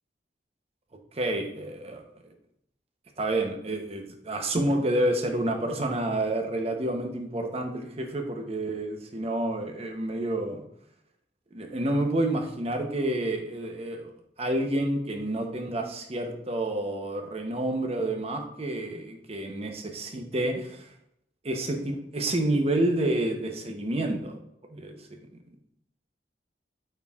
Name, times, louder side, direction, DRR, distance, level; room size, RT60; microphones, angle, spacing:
voice 1, 1.1-2.0 3.2-10.6 11.5-14.1 14.4-20.9 21.4-24.4 24.7-25.0, right 1 dB, 35° right, 3 dB, 0.8 m, -29 dB
9.0 x 4.3 x 2.4 m, 0.74 s
head